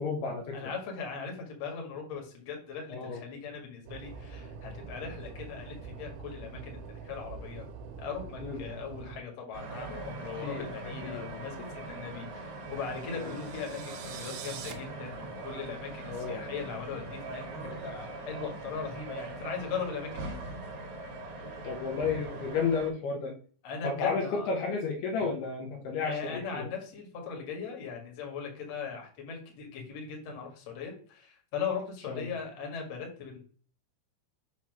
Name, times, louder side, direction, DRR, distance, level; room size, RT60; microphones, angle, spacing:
voice 1, 0.0-0.7 2.9-3.2 8.4-8.6 10.4-11.3 11.6-11.7 13.2-13.3 16.1-16.4 21.6-23.4 23.8-26.7 32.1-32.4, left 5 dB, 75° left, 1 dB, 2.7 m, -32 dB
voice 2, 0.5-7.7 8.0-20.4 21.5-21.6 23.6-24.5 26.0-33.4, left 6 dB, 50° left, 1 dB, 2.1 m, -39 dB
sound 1, 3.9-9.2, right 5 dB, 90° right, 3.1 m, -44 dB
sound 2, 9.5-22.9, right 2 dB, 50° right, 2.6 m, -41 dB
sound 3, 12.8-14.7, right 9 dB, 75° right, 2.6 m, -45 dB
7.3 x 2.9 x 6.0 m, 0.43 s
omnidirectional pair, 5.0 m